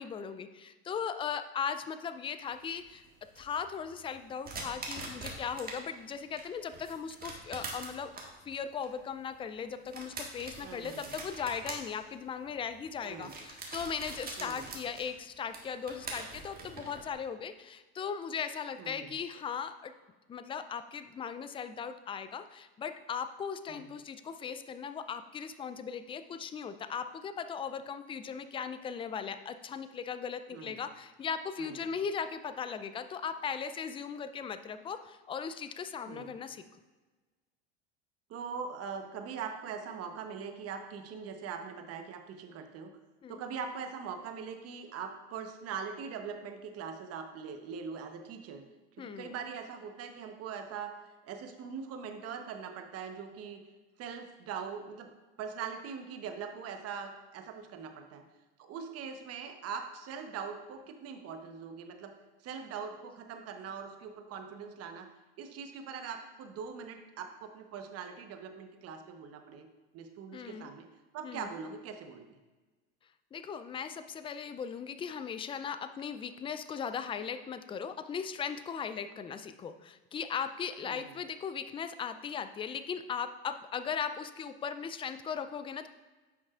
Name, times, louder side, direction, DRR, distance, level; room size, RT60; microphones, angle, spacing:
voice 1, 0.0-3.0 3.4-8.1 8.5-19.9 20.3-36.6 43.2-43.4 49.0-49.3 70.3-70.7 71.2-71.5 73.3-85.9, left 7 dB, 15° left, 11 dB, 0.4 m, -38 dB
sound 1, 2.5-5.8 6.2-17.1, right 3 dB, 25° right, 1.6 m, -44 dB
voice 2, 10.6-11.2 13.0-13.3 14.4-14.7 18.8-19.1 23.7-23.8 30.5-30.8 31.6-31.8 36.1-36.3 38.3-43.0 43.3-48.6 49.0-50.9 51.2-53.6 54.0-55.1 55.4-58.2 58.6-62.1 62.4-65.1 65.4-69.7 69.9-70.9 71.1-72.4 80.8-81.2, right 6 dB, 45° right, 6 dB, 1.0 m, -42 dB
9.9 x 6.0 x 2.5 m, 1.2 s
hypercardioid pair, 95°, 33 cm